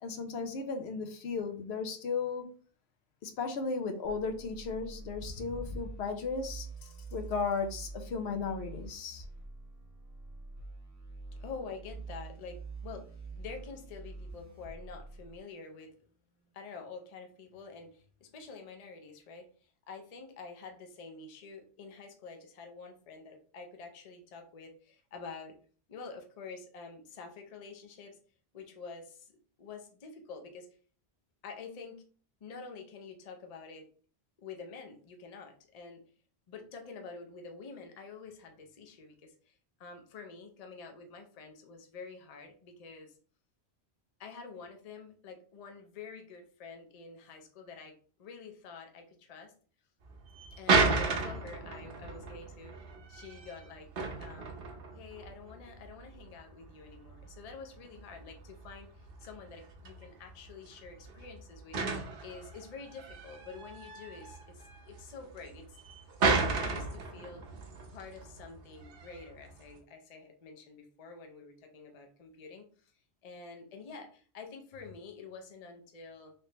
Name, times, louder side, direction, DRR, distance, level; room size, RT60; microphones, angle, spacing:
voice 1, 0.0-2.5 3.2-9.2, left 4 dB, 80° left, 7 dB, 0.9 m, -35 dB
sound 1, 4.0-15.4, right 3 dB, 15° right, 0.8 m, -46 dB
voice 2, 11.4-15.9 16.4-19.5 19.9-25.5 25.9-28.2 28.5-29.3 29.6-30.7 31.4-32.0 32.4-33.9 34.4-36.0 36.5-43.1 44.2-49.5 50.5-52.7 53.1-53.9 54.2-54.6 54.9-65.8 66.4-67.4 67.9-72.9 73.2-76.3, left 4 dB, 45° left, 4 dB, 0.6 m, -48 dB
sound 2, 50.0-69.8, right 4 dB, 60° right, 0.9 m, -35 dB
3.2 x 3.1 x 2.8 m, 0.43 s
omnidirectional pair, 1.1 m